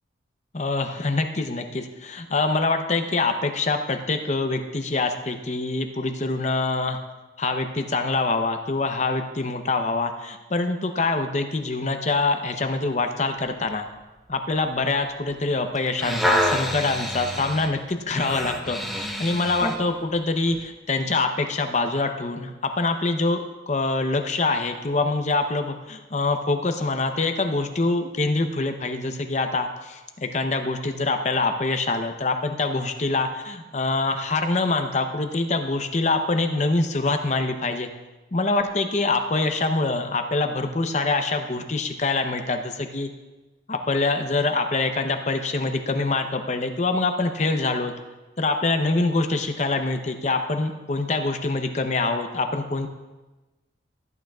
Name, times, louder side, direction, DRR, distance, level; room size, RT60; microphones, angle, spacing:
voice 1, 0.5-7.0 7.4-13.9 14.3-37.9 38.3-43.1 43.7-47.9 48.4-52.9, left 3 dB, 35° left, 6 dB, 0.7 m, -25 dB
sound 1, 15.7-19.8 20.5-20.6, equal, ahead, 0.7 m, -27 dB
16.0 x 8.9 x 2.4 m, 1.1 s
head